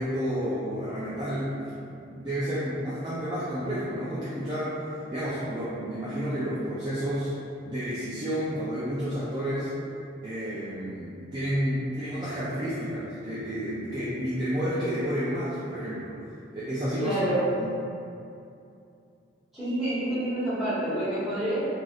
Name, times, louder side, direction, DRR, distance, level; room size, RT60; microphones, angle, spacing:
voice 1, 0.0-1.5 1.9-4.8 5.1-7.3 7.7-9.7 10.2-16.1 16.5-17.1 17.6-17.7, equal, 20° right, -11 dB, 0.4 m, -30 dB
voice 2, 17.0-17.5 19.5-21.8, right 1 dB, ahead, -15 dB, 1.3 m, -28 dB
3.2 x 2.5 x 2.3 m, 2.6 s
head